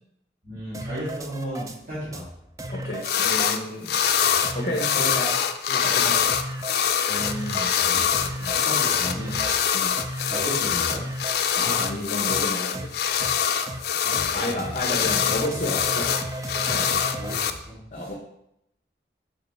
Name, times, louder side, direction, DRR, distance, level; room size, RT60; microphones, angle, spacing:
voice 1, 0.4-2.3 7.1-9.5 10.3-11.2 13.8-15.0 17.2-18.1, equal, 50° right, -12 dB, 2.8 m, -35 dB
sound 1, 0.7-1.8 2.1-2.2 2.6-3.6 4.0-4.1 4.4-5.5 5.8-5.9 6.3-6.8 7.2-7.8 8.1-8.7 9.0-9.6 10.0-10.5 10.9-11.5 11.8-12.0 12.3-12.4 12.7-12.9 13.2-13.3 13.7-13.8 14.1-14.3 14.6-14.7 15.0-17.4, right 1 dB, 20° right, 0.4 m, -34 dB
voice 2, 2.7-3.9 4.5-5.3 5.7-6.2 9.7-10.0 11.5-12.9 14.3-16.1 16.5-17.0 17.9-18.1, left 1 dB, 45° left, -2 dB, 1.0 m, -31 dB
sound 2, 3.0-3.6 3.9-17.5, left 8 dB, 65° left, 0.4 m, -24 dB
6.6 x 5.7 x 3.4 m, 0.77 s
head